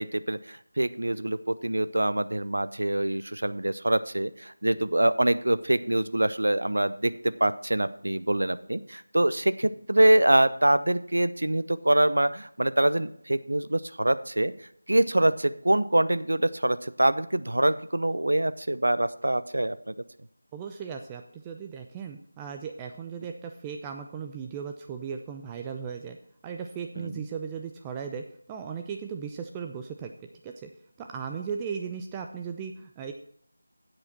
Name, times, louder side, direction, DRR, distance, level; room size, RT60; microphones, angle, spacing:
voice 1, 0.0-14.5 14.9-19.9 27.0-27.3, right 1 dB, 70° right, 14 dB, 0.6 m, -25 dB
voice 2, 20.5-26.2 26.4-30.1 30.4-30.7 31.0-33.1, right 6 dB, 10° right, 4 dB, 0.3 m, -37 dB
10.5 x 7.9 x 4.2 m, 0.65 s
figure-of-eight pair, 165°, 0 cm